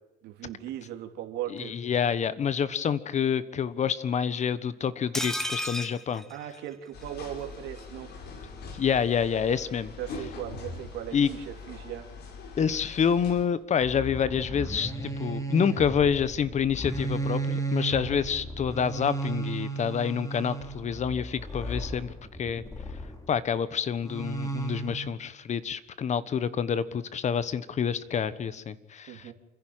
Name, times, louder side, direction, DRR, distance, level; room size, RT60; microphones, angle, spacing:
voice 1, 0.2-1.7 6.3-8.1 10.0-12.1 29.1-29.3, right 11 dB, 85° right, 5 dB, 3.1 m, -38 dB
voice 2, 1.5-6.2 8.7-9.9 11.1-11.3 12.6-22.1 22.4-22.6 23.3-29.2, left 7 dB, 45° left, 16 dB, 1.3 m, -27 dB
sound 1, 5.1-7.1 7.4-7.5 7.8-7.9, equal, 5° left, 1.5 m, -34 dB
sound 2, 6.9-13.5, left 4 dB, 70° left, 4.6 m, -42 dB
sound 3, 13.8-23.4 24.0-25.1, right 3 dB, 20° left, 4.0 m, -34 dB
28.5 x 11.0 x 9.0 m, 0.96 s
cardioid pair, 110°, 17 cm